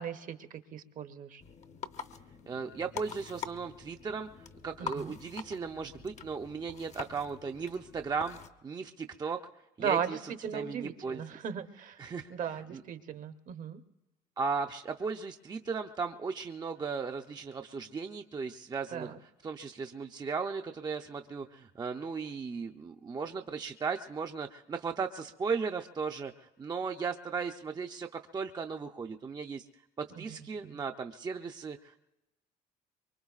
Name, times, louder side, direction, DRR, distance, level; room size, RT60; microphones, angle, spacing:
voice 1, 0.0-1.4 4.8-5.2 9.8-12.0 12.3-13.8 18.9-19.2 30.2-30.4 30.6-30.8, right 7 dB, 50° right, 9 dB, 0.9 m, -37 dB
sound 1, 1.4-8.5, left 6 dB, 45° left, 0.8 m, -45 dB
voice 2, 2.5-4.3 4.6-9.4 9.8-10.2 10.5-11.2 12.0-12.3 12.7-12.8 14.4-19.1 19.4-29.6 30.0-32.0, right 5 dB, 25° right, 4 dB, 0.5 m, -36 dB
24.0 x 23.0 x 2.4 m, 0.98 s
cardioid pair, 110°, 17 cm